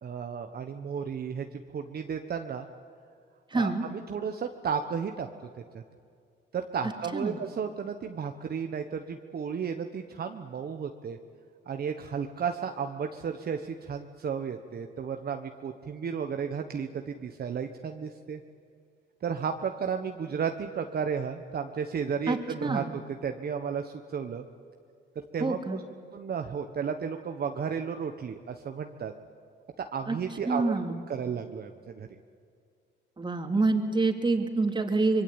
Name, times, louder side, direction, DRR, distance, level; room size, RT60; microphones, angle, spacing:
voice 1, 0.0-2.7 3.5-5.3 5.7-5.8 6.5-11.2 11.7-18.4 19.2-22.8 23.2-24.4 25.3-25.8 26.1-29.1 29.9-30.7 31.1-32.1, right 6 dB, 50° right, 5 dB, 1.3 m, -33 dB
voice 2, 3.5-3.9 7.1-7.4 22.3-22.9 25.4-25.8 30.1-30.2 30.5-31.0 33.2-35.2, right 3 dB, 25° right, 5 dB, 3.0 m, -27 dB
25.0 x 22.5 x 8.9 m, 2.3 s
cardioid pair, 90°, 20 cm